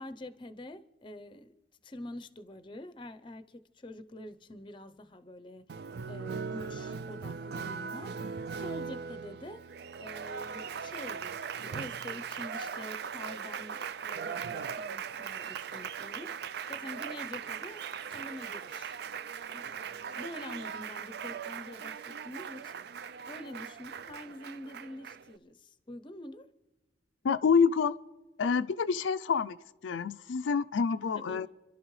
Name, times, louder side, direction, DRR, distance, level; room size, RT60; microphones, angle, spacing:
voice 1, 0.0-1.6 1.8-5.8 6.1-9.6 10.0-19.0 19.5-19.7 20.1-22.8 23.3-26.5 31.1-31.5, left 1 dB, 25° left, 0.6 m, -46 dB
Applause, 5.7-25.4, right 6 dB, 55° right, 0.4 m, -39 dB
voice 2, 27.2-28.0 28.4-29.6 29.8-31.5, left 5 dB, 80° left, 0.4 m, -27 dB
29.5 x 11.5 x 3.2 m
head